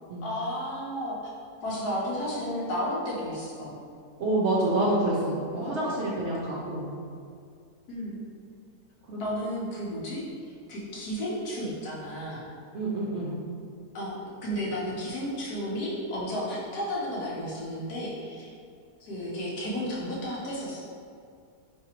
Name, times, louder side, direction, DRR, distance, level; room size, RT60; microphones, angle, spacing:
voice 1, 0.2-1.3 1.6-3.7 5.6-6.0 7.9-8.2 9.2-12.4 13.9-14.1 14.4-18.5 19.0-20.8, equal, 75° left, -5 dB, 1.4 m, -33 dB
voice 2, 4.2-6.9 9.1-9.2 12.7-13.3, right 1 dB, 60° right, -5 dB, 0.8 m, -27 dB
4.8 x 3.3 x 2.9 m, 2.3 s
omnidirectional pair, 1.7 m